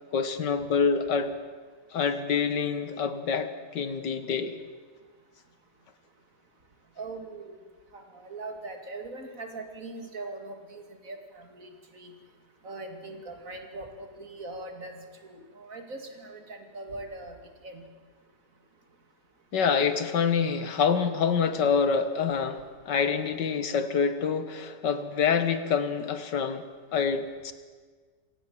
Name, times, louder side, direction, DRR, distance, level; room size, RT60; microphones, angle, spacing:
voice 1, 0.1-1.3 1.9-4.5 19.5-26.7 26.9-27.5, left 6 dB, 80° left, 10 dB, 2.1 m, -26 dB
voice 2, 7.0-7.6 7.9-11.7 11.9-12.1 12.6-17.4 17.6-17.8, right 2 dB, 50° right, 5 dB, 2.9 m, -41 dB
27.5 x 17.5 x 7.4 m, 1.5 s
omnidirectional pair, 1.8 m